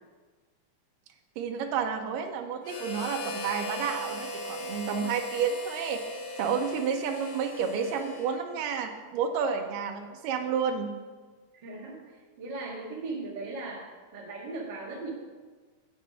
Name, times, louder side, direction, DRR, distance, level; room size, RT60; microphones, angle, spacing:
voice 1, 1.4-6.0 6.4-10.9, right 6 dB, 85° right, 3 dB, 2.4 m, -30 dB
Harmonica, 2.6-8.7, left 1 dB, 60° left, 1.8 m, -38 dB
voice 2, 11.5-12.0 12.4-13.9 14.1-15.1, right 3 dB, 40° right, -3 dB, 2.0 m, -37 dB
8.3 x 7.3 x 5.6 m, 1.4 s
omnidirectional pair, 3.8 m